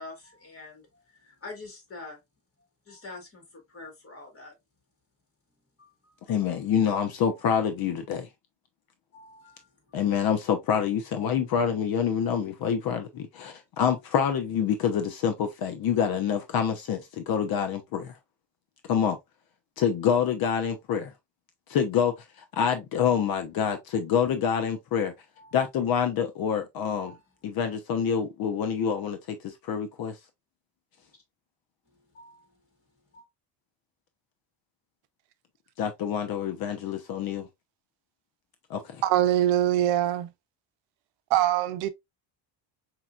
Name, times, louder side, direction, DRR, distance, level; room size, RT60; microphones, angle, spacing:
voice 1, 0.0-2.2 2.9-4.5 5.8-6.3 7.3-7.4 9.1-10.0 25.4-25.6 27.0-27.2 31.9-32.5 33.1-33.3, left 3 dB, 30° left, 2.3 m, -46 dB
voice 2, 6.3-8.3 9.9-18.1 18.9-19.2 19.8-21.1 21.7-22.1 22.5-25.1 25.5-27.1 27.4-30.1 35.8-37.5 38.7-39.0, left 7 dB, 55° left, 0.8 m, -26 dB
voice 3, 39.0-40.3 41.3-41.9, right 12 dB, 85° right, 0.7 m, -23 dB
5.2 x 2.9 x 2.3 m
cardioid pair, 130°, 44 cm